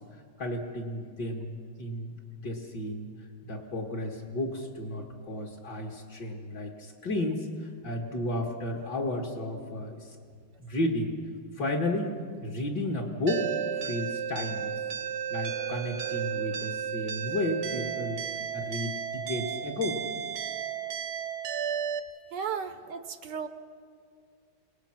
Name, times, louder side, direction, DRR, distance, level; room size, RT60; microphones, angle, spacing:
voice 1, 0.4-3.1 3.4-7.5 7.8-10.1 10.6-11.1 11.6-12.1 12.4-13.5 13.8-14.8 15.3-18.2 18.5-20.0, left 1 dB, 55° left, 0 dB, 2.4 m, -33 dB
sound 1, 13.3-22.0, right 8 dB, 85° right, 2.0 m, -33 dB
voice 2, 22.3-23.5, right 7 dB, 65° right, 10 dB, 1.3 m, -35 dB
28.5 x 19.0 x 6.0 m, 2.1 s
omnidirectional pair, 2.3 m